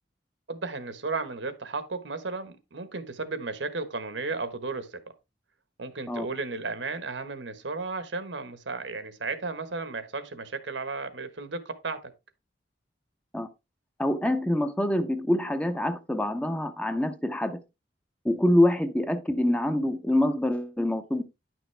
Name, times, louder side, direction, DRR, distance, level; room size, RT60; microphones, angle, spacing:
voice 1, 0.5-5.0 5.8-12.1, right 3 dB, 75° right, 1.3 m, -34 dB
voice 2, 14.0-17.6 18.2-21.2, left 1 dB, 5° left, 0.7 m, -25 dB
10.5 x 6.1 x 3.3 m
head